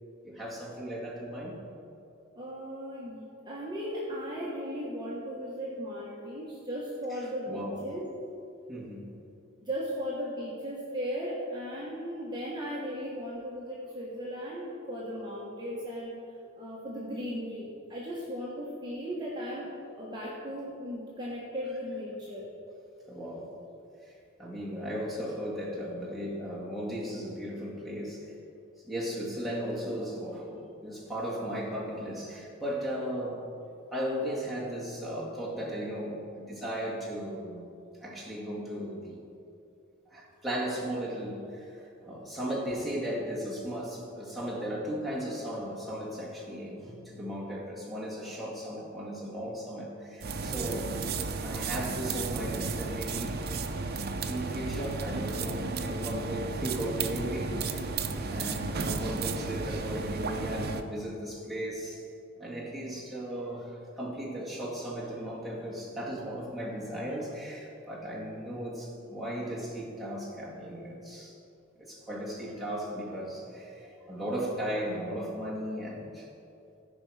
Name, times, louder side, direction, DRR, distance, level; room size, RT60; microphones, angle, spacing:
voice 1, 0.2-1.6 7.1-7.2 7.4-7.8 8.7-9.2 23.1-23.5 24.4-28.3 28.8-33.4 33.9-37.7 38.0-39.2 40.1-51.0 51.4-53.5 54.2-57.9 58.3-62.0 62.4-71.4 71.8-76.3, equal, ahead, -7 dB, 2.0 m, -36 dB
voice 2, 2.3-8.0 9.6-16.1 16.6-19.7 20.0-22.4, equal, 20° right, -6 dB, 1.4 m, -37 dB
sound 1, 50.2-60.8, right 4 dB, 50° right, 0.6 m, -33 dB
15.5 x 5.4 x 4.9 m, 2.6 s
head